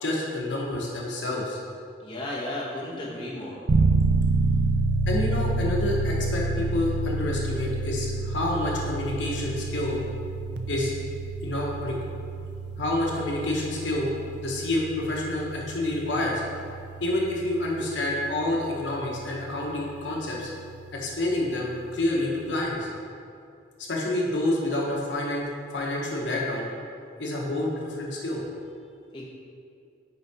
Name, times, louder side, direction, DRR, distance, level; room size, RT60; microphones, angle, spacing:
voice 1, 0.0-1.6 5.1-10.0 10.7-10.9 11.4-11.9 12.8-14.1 14.4-16.4 17.0-20.5 20.9-22.9 23.9-25.5 25.7-26.7 27.2-28.4, left 1 dB, 80° left, -2 dB, 0.9 m, -28 dB
voice 2, 2.0-3.7 29.1-29.3, left 1 dB, 25° left, -7 dB, 1.2 m, -34 dB
sound 1, 3.7-20.4, right 3 dB, 65° right, 0.5 m, -29 dB
5.6 x 4.5 x 4.7 m, 2.4 s
head